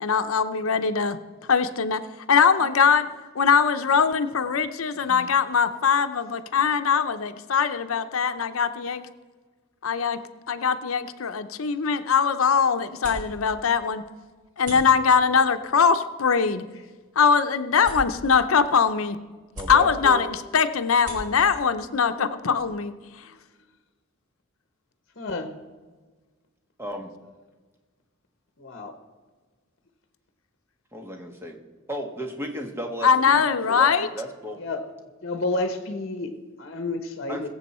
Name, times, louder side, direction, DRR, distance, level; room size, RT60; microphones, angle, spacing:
voice 1, 0.0-1.2 1.5-2.0 2.3-3.1 3.4-9.0 9.8-10.2 10.5-14.0 14.6-16.6 17.2-19.2 19.7-22.9 33.0-34.1, left 6 dB, 90° left, 9 dB, 0.7 m, -21 dB
sound 1, 11.6-23.1, equal, 40° right, 4.3 m, -44 dB
voice 2, 19.5-20.2 26.8-27.1 30.9-31.6 31.9-33.4 33.7-34.6 37.3-37.5, right 1 dB, 10° right, 3 dB, 1.4 m, -34 dB
voice 3, 25.2-25.5 28.6-28.9 34.6-34.9 35.2-36.3 36.7-37.5, left 2 dB, 55° left, 7 dB, 1.1 m, -30 dB
22.0 x 7.5 x 4.3 m, 1.4 s
head